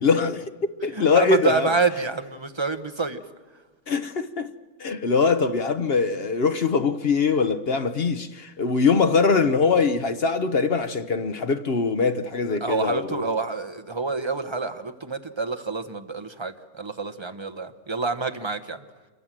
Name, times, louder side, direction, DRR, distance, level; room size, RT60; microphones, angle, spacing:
voice 1, 0.0-1.7 3.9-4.5 4.8-13.3, left 4 dB, 45° left, 1.0 m, -22 dB
voice 2, 0.9-3.2 12.5-18.8, right 4 dB, 20° right, 1.0 m, -27 dB
27.0 x 23.5 x 7.5 m
omnidirectional pair, 1.6 m